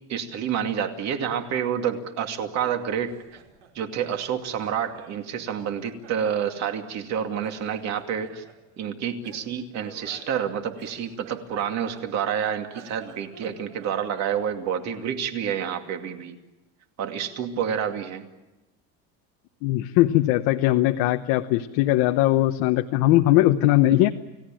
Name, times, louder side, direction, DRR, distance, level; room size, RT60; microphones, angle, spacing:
voice 1, 0.1-3.2 3.7-8.4 8.8-16.4 17.0-18.2, right 8 dB, 45° right, 5 dB, 2.5 m, -28 dB
Laughter, 3.0-5.2 5.6-7.1 7.4-8.6 9.2-12.3 12.6-14.6, right 6 dB, 85° right, 5.7 m, -50 dB
voice 2, 19.6-24.1, left 15 dB, 80° left, 6 dB, 1.1 m, -20 dB
29.5 x 17.5 x 9.0 m, 1.0 s
cardioid pair, 165°, 36 cm